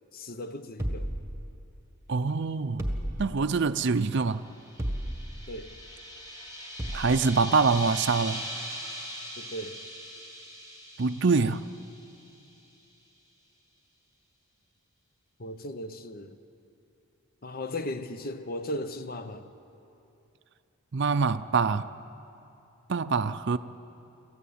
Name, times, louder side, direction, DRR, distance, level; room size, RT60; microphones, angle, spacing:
voice 1, 0.1-1.1 5.5-5.7 9.4-9.8 15.4-16.4 17.4-19.5, left 1 dB, 40° left, 0.9 m, -37 dB
sound 1, 0.8-1.9 2.8-3.7 4.8-5.5 6.8-7.3, right 1 dB, 10° right, 1.7 m, -33 dB
voice 2, 2.1-2.9 3.2-4.4 6.9-8.4 11.0-11.7 20.9-21.9 22.9-23.6, right 4 dB, 50° right, 0.5 m, -25 dB
sound 2, 4.2-12.5, equal, 20° left, 3.6 m, -41 dB
26.0 x 15.0 x 8.6 m
head